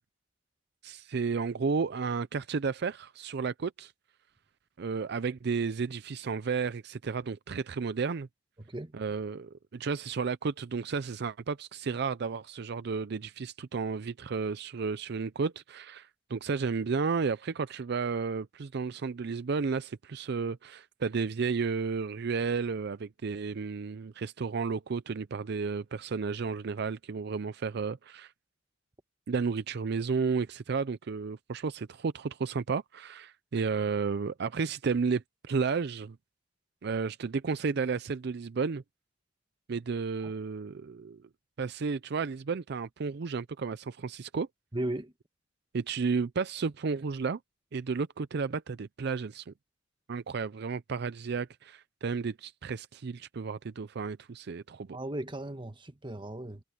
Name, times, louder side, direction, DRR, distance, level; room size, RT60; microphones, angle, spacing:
voice 1, 0.8-3.9 4.8-8.3 8.9-28.3 29.3-36.2 36.8-38.8 39.7-41.3 41.6-44.5 45.7-47.4 47.7-49.5 50.1-55.0, right 5 dB, 60° right, 0.5 m, -32 dB
voice 2, 8.6-8.9 44.7-45.1 54.9-56.6, right 1 dB, 25° right, 1.4 m, -36 dB
head